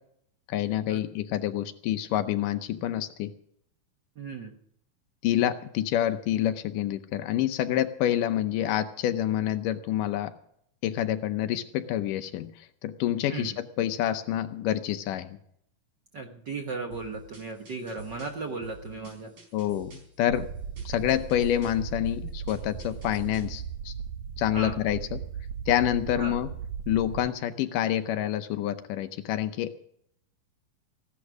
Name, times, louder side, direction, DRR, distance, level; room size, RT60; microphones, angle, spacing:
voice 1, 0.5-3.3 5.2-10.3 10.8-12.5 12.8-15.3 19.5-20.5 20.9-23.9 24.4-25.2 25.7-26.5 26.9-29.8, left 12 dB, 75° left, 10 dB, 2.3 m, -27 dB
voice 2, 4.2-4.6 13.3-13.6 16.1-19.3 24.5-24.8 26.2-26.4, right 3 dB, 65° right, 3 dB, 1.0 m, -36 dB
sound 1, 16.9-23.6, right 2 dB, 40° right, 5.8 m, -47 dB
sound 2, 20.3-27.3, right 7 dB, 85° right, 1.5 m, -37 dB
16.0 x 11.5 x 6.1 m, 0.71 s
omnidirectional pair, 3.9 m